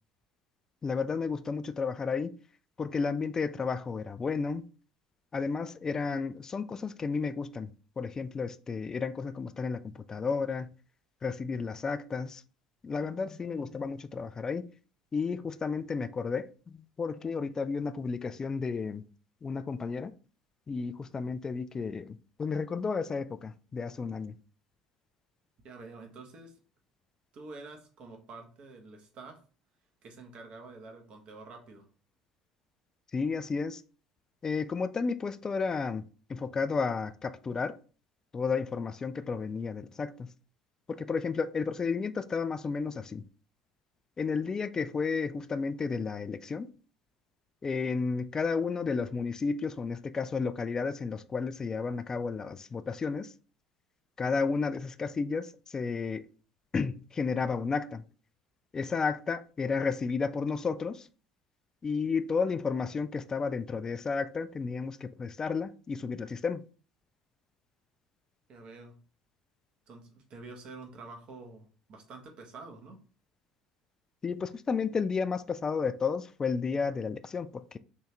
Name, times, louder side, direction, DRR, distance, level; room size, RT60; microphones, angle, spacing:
voice 1, 0.8-2.3 2.8-4.6 5.3-7.7 8.0-10.7 11.2-12.4 12.8-14.7 15.1-19.0 19.4-20.1 20.7-24.4 33.1-33.8 34.4-36.0 36.3-37.8 38.3-40.3 40.9-43.2 44.2-46.7 47.6-53.3 54.2-56.3 56.7-58.0 58.7-61.1 61.8-66.6 74.2-77.8, left 5 dB, 25° left, 0.3 m, -32 dB
voice 2, 25.6-26.6 27.3-29.4 30.0-31.9 68.5-68.9 69.9-73.0, right 3 dB, 50° right, 1.1 m, -48 dB
3.8 x 2.7 x 3.3 m
hypercardioid pair, 65°, 2 cm